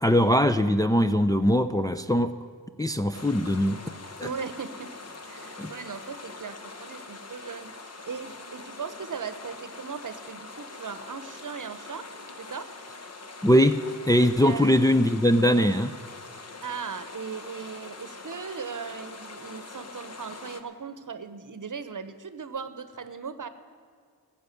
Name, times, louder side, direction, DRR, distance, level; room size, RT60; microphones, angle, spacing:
voice 1, 0.0-2.3 2.8-3.8 4.2-4.3 5.6-5.7 13.4-13.8 14.1-16.0, equal, 10° left, 8 dB, 0.5 m, -21 dB
sound 1, 3.1-20.6, left 3 dB, 40° left, 1.2 m, -43 dB
voice 2, 4.2-5.0 5.2-7.7 8.1-12.1 12.4-12.7 14.4-14.8 16.6-23.5, right 6 dB, 50° right, 12 dB, 0.9 m, -38 dB
15.0 x 7.2 x 9.2 m, 2.1 s
cardioid pair, 45°, 39 cm